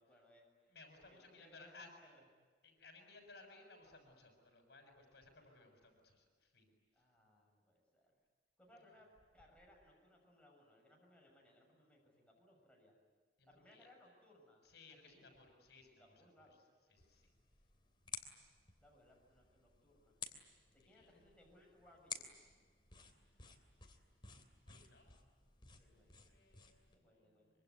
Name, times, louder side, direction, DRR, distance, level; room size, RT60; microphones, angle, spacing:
voice 1, 0.0-0.7 1.1-2.3 6.9-8.1 8.6-13.0 13.5-14.6 15.0-15.4 15.9-16.6 18.8-20.2 20.7-22.3 25.8-26.2 26.9-27.5, left 1 dB, 5° left, -2 dB, 7.0 m, -66 dB
voice 2, 0.7-1.9 2.6-6.7 13.4-13.9 14.6-16.0 16.9-17.3 20.8-21.1 23.0-23.4 24.7-25.1 25.7-27.3, left 3 dB, 65° left, 3 dB, 6.8 m, -61 dB
sound 1, 17.0-27.0, left 6 dB, 30° left, 3.0 m, -54 dB
25.5 x 24.5 x 9.6 m, 1.5 s
head